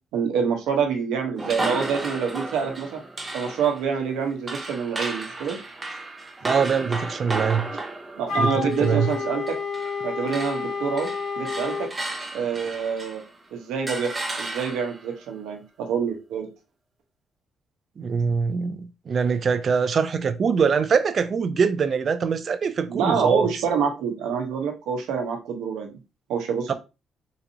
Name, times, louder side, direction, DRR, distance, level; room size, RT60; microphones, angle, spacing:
voice 1, 0.1-3.0 3.3-5.6 8.1-9.6 10.0-11.1 11.4-11.9 12.3-13.2 13.5-14.1 14.4-16.5 22.9-25.9 26.3-26.7, right 6 dB, 90° right, 0.9 m, -26 dB
sound 1, 1.4-10.0 10.3-13.3 13.9-15.1, right 2 dB, 25° right, 0.8 m, -34 dB
voice 2, 6.4-7.7 8.4-9.1 18.0-23.5 26.7-26.8, right 6 dB, 50° right, 0.3 m, -23 dB
Wind instrument woodwind instrument, 8.3-11.9, left 4 dB, 70° left, 1.1 m, -29 dB
4.0 x 2.7 x 2.7 m
cardioid pair, 90°, 0 cm